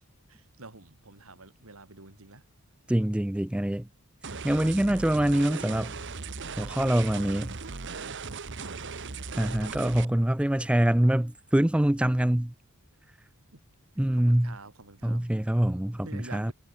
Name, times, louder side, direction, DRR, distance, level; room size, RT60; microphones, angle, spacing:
voice 1, 0.3-2.4 8.6-9.1 13.5-13.6 14.1-15.2 16.0-16.5, right 3 dB, 80° right, 2.8 m, -48 dB
voice 2, 2.9-3.9 4.4-5.9 6.6-7.6 9.3-12.5 14.0-14.6 15.0-16.5, right 1 dB, 5° right, 0.3 m, -25 dB
sound 1, 4.2-10.0, right 4 dB, 55° right, 1.2 m, -38 dB
head